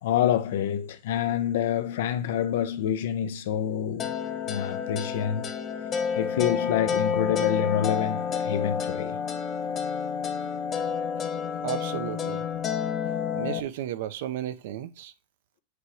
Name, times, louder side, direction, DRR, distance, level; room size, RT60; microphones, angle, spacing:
voice 1, 0.0-4.2 4.5-5.5 6.1-9.2 13.0-13.4, left 10 dB, 70° left, 0.8 m, -27 dB
sound 1, 4.0-13.6, left 7 dB, 20° left, 0.7 m, -29 dB
voice 2, 11.5-12.5 13.1-15.1, right 11 dB, 60° right, 0.7 m, -34 dB
8.0 x 3.0 x 4.8 m
supercardioid pair, 175°, 0 cm